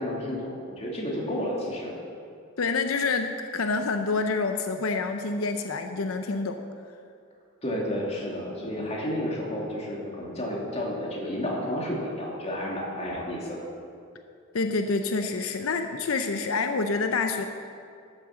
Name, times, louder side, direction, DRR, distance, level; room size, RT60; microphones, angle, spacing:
voice 1, 0.0-1.9 7.6-13.6, left 1 dB, 30° left, -3 dB, 2.5 m, -31 dB
voice 2, 2.6-6.6 8.8-8.9 14.5-17.4, left 4 dB, 90° left, 6 dB, 0.7 m, -27 dB
12.5 x 7.8 x 7.1 m, 2.4 s
head